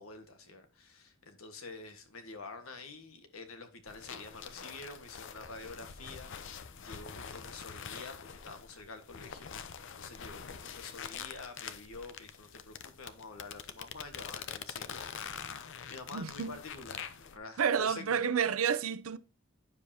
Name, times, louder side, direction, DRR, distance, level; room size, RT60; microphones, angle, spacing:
voice 1, 0.0-18.2, left 3 dB, 80° left, 1.5 m, -48 dB
sound 1, 3.9-17.4, left 7 dB, 60° left, 0.7 m, -45 dB
voice 2, 16.1-16.6 17.6-19.2, right 7 dB, 75° right, 0.6 m, -30 dB
9.7 x 7.0 x 2.8 m
head